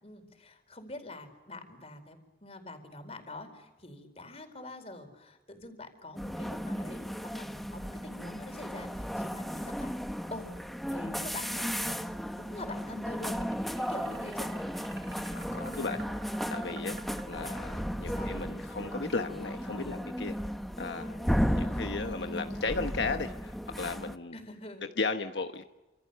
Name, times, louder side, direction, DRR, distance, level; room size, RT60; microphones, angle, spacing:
voice 1, 0.0-9.9 10.3-10.5 10.9-12.0 12.4-13.4 13.9-14.5 18.0-18.3 21.4-22.0 24.3-24.8, left 2 dB, 35° left, 6 dB, 4.6 m, -45 dB
sound 1, 6.2-24.2, equal, ahead, 1.0 m, -35 dB
sound 2, 13.2-18.2, right 4 dB, 85° right, 2.7 m, -49 dB
voice 2, 15.3-16.0 16.5-17.0 17.3-20.4 20.8-24.3 25.0-25.6, left 3 dB, 85° left, 6 dB, 1.2 m, -35 dB
28.5 x 27.5 x 6.9 m, 1.1 s
head